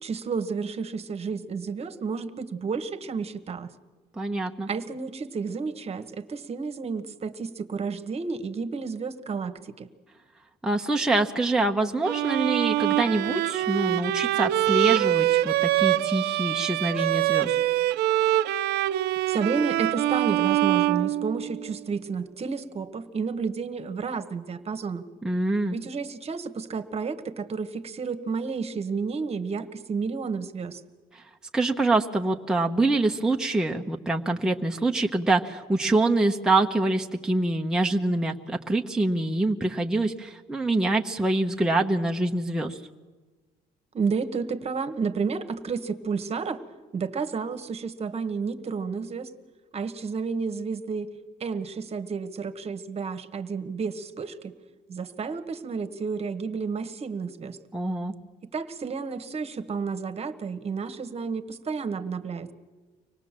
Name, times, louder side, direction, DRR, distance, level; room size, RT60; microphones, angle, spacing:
voice 1, 0.0-3.7 4.7-9.9 19.3-25.0 25.7-30.8 43.9-46.6 46.9-49.3 49.7-51.1 51.4-54.5 54.9-57.6 58.5-62.5, right 5 dB, 35° right, 11 dB, 1.4 m, -31 dB
voice 2, 4.2-4.7 10.6-17.6 25.2-25.7 31.1-31.2 31.5-42.8 57.7-58.1, right 2 dB, 5° right, 1 dB, 1.0 m, -25 dB
Bowed string instrument, 12.0-21.8, right 15 dB, 75° right, 0.6 m, -24 dB
25.0 x 18.5 x 7.5 m, 1.3 s
cardioid pair, 110°, 17 cm